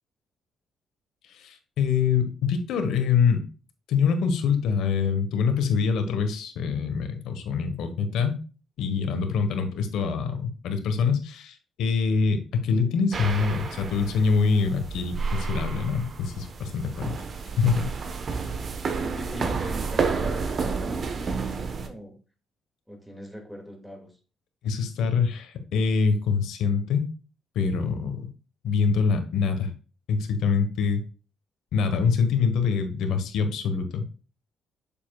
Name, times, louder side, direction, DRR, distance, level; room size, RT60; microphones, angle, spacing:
voice 1, 1.3-3.4 3.9-8.4 8.8-17.2 17.6-17.9 24.6-27.0 27.5-28.3 28.6-29.7 30.1-31.0 31.7-34.1, left 5 dB, 80° left, 1.3 m, -25 dB
sound 1, 13.1-21.9, right 5 dB, 50° right, 1.1 m, -30 dB
voice 2, 19.0-22.1 22.9-24.2, equal, ahead, 2.2 m, -41 dB
7.4 x 6.9 x 2.4 m
cardioid pair, 90°, 0 cm